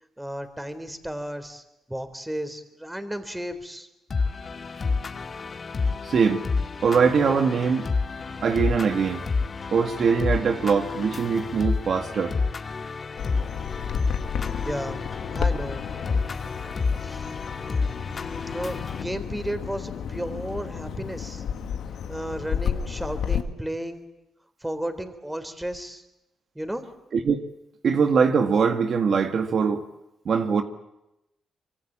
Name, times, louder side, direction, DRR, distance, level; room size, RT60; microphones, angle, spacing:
voice 1, 0.2-1.6 1.9-3.9 14.6-15.0 15.3-15.8 17.0-17.4 18.5-21.4 22.1-24.1 24.6-26.0 26.6-26.9, right 1 dB, 5° right, 3.7 m, -33 dB
sound 1, 4.1-19.0, left 4 dB, 45° left, 1.9 m, -29 dB
voice 2, 6.0-6.4 6.8-7.9 8.4-9.2 9.7-12.4 27.1-27.4 27.8-29.8 30.3-30.6, right 6 dB, 60° right, 1.8 m, -22 dB
Bird vocalization bird call bird song, 13.2-23.4, left 7 dB, 80° left, 2.1 m, -32 dB
25.0 x 24.0 x 8.8 m
cardioid pair, 80°, 0 cm